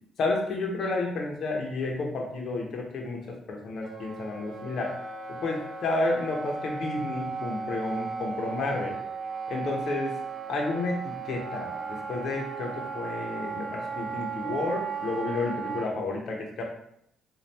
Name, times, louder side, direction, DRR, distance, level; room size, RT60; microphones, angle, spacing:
voice 1, 0.2-4.9 5.3-9.0 9.5-10.1 10.5-16.6, left 2 dB, 60° left, 0 dB, 0.7 m, -31 dB
Wind instrument woodwind instrument, 3.8-15.9, right 5 dB, 50° right, 0.5 m, -36 dB
4.0 x 2.3 x 3.3 m, 0.73 s
cardioid pair, 90°, 0 cm